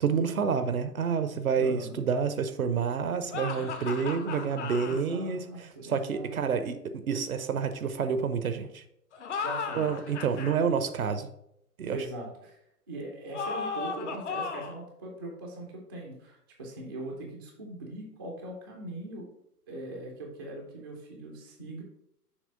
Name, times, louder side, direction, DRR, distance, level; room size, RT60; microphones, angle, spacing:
voice 1, 0.0-5.4 5.8-8.8 9.7-11.3 11.8-12.0, right 6 dB, 60° right, 10 dB, 0.7 m, -28 dB
voice 2, 1.5-2.0 4.8-6.7 9.4-10.2 11.9-12.6 12.9-19.3 19.7-21.8, right 2 dB, 15° right, -1 dB, 0.4 m, -41 dB
sound 1, 3.3-5.0 9.1-10.6 13.3-14.8, left 5 dB, 45° left, 0.8 m, -35 dB
6.6 x 3.0 x 5.2 m, 0.77 s
figure-of-eight pair, 115°, 47 cm